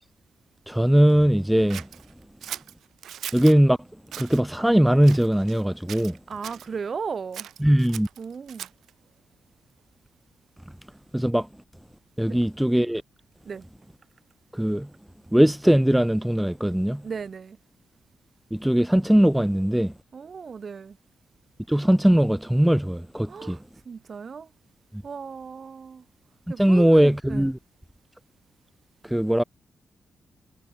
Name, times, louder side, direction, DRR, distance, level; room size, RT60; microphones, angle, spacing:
voice 1, 0.7-1.9 3.3-3.8 4.2-6.2 7.6-8.1 11.1-11.5 12.2-13.0 14.5-14.9 15.3-17.0 18.5-19.9 21.7-23.6 26.6-27.6 29.0-29.4, equal, 5° right, 0.3 m, -20 dB
Scissors, 1.7-3.6 4.1-4.4 5.0-5.6 5.9-6.7 7.3-8.9, right 10 dB, 90° right, 5.1 m, -39 dB
voice 2, 6.3-7.5 8.2-8.7 12.3-12.4 13.4-13.7 17.0-17.6 20.1-21.0 23.3-24.5 25.0-26.0 26.5-27.5, right 6 dB, 35° right, 1.8 m, -36 dB
wide cardioid pair, 175°, 0 cm